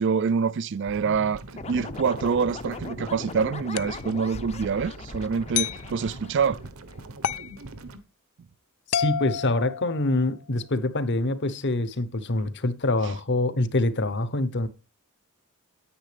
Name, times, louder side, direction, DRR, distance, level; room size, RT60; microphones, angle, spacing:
voice 1, 0.0-1.4 1.7-6.6, right 5 dB, 55° right, 0.4 m, -26 dB
sound 1, 0.9-8.0, right 1 dB, 75° right, 1.1 m, -42 dB
sound 2, 1.5-7.0, left 3 dB, 30° left, 0.6 m, -40 dB
sound 3, 3.8-4.0 5.5-5.9 7.2-7.5 8.9-10.3, left 9 dB, 80° left, 0.4 m, -29 dB
voice 2, 8.9-14.7, left 2 dB, 55° left, 1.0 m, -25 dB
9.9 x 9.2 x 3.4 m
head